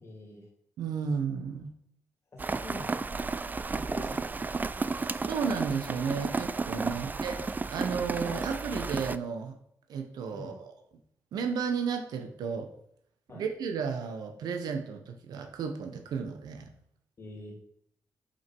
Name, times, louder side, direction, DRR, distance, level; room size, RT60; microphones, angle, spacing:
voice 1, 0.0-0.5 2.3-3.2 3.6-4.4 6.9-7.1 10.3-10.6 13.3-13.4 17.2-17.6, left 1 dB, 40° left, -1 dB, 2.5 m, -46 dB
voice 2, 0.8-1.7 4.9-9.6 9.9-10.7 11.3-12.7 13.3-16.7, right 6 dB, 85° right, 6 dB, 1.0 m, -33 dB
Rain, 2.4-9.2, right 4 dB, 25° right, 0.4 m, -33 dB
6.2 x 5.7 x 4.6 m, 0.71 s
cardioid pair, 70°, 7 cm